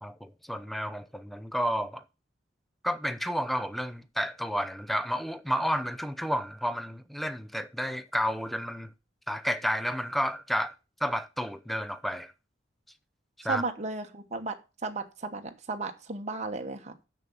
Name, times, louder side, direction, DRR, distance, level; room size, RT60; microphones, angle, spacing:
voice 1, 0.0-2.0 2.8-8.9 9.3-10.7 11.0-12.3 13.4-13.6, equal, ahead, 0.6 m, -31 dB
voice 2, 13.4-14.6 14.8-17.0, right 3 dB, 40° right, 1.1 m, -34 dB
6.9 x 6.7 x 7.0 m
head